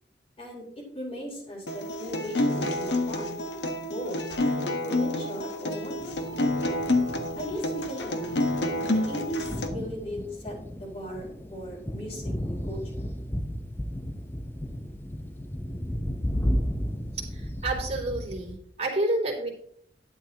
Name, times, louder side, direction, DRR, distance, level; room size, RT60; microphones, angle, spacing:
voice 1, 0.9-3.4 3.8-6.0 7.4-8.5 8.9-12.8, equal, 35° left, -3 dB, 4.5 m, -37 dB
Acoustic guitar, 1.7-9.7, left 1 dB, 75° left, 1.3 m, -28 dB
Thunder, 6.0-18.6, equal, 15° left, 0.8 m, -34 dB
voice 2, 17.3-19.5, right 2 dB, 35° right, -2 dB, 3.3 m, -29 dB
12.0 x 10.5 x 3.0 m, 0.66 s
head